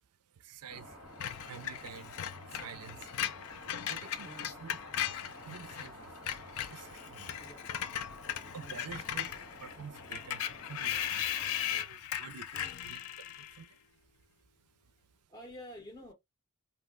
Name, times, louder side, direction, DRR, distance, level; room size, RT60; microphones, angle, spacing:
voice 1, 0.3-1.0 1.4-2.1 2.5-3.2 3.9-5.1 5.4-6.2 6.6-7.4 8.2-9.3 9.6-13.8 14.8-14.9, right 6 dB, 85° right, 0.4 m, -49 dB
sound 1, 0.7-11.8, left 1 dB, 90° left, 1.3 m, -51 dB
Screech, 1.2-5.9 6.2-13.6, left 10 dB, 70° left, 0.4 m, -38 dB
voice 2, 8.6-9.0 12.5-12.9 14.9-15.0 15.3-16.1, equal, 15° left, 0.5 m, -50 dB
2.6 x 2.1 x 3.6 m
head